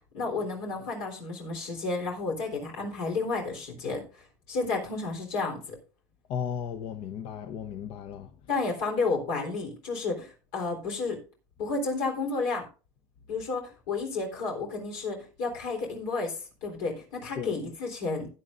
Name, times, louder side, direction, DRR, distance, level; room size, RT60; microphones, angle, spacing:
voice 1, 0.1-4.0 4.5-5.8 8.5-11.2 11.6-12.6 13.3-18.3, left 3 dB, 90° left, 3.7 m, -31 dB
voice 2, 6.3-8.3 17.4-17.6, left 8 dB, 65° left, 0.8 m, -35 dB
15.5 x 9.8 x 2.5 m
supercardioid pair, 110°, 10 cm